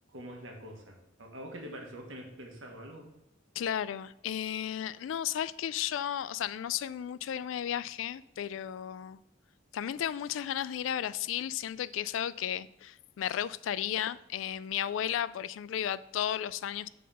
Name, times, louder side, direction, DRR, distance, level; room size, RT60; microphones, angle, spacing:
voice 1, 0.1-3.1, equal, 85° right, 1.4 m, -45 dB
voice 2, 3.6-9.2 9.7-16.9, left 10 dB, 80° left, 0.3 m, -34 dB
7.4 x 4.2 x 5.5 m
head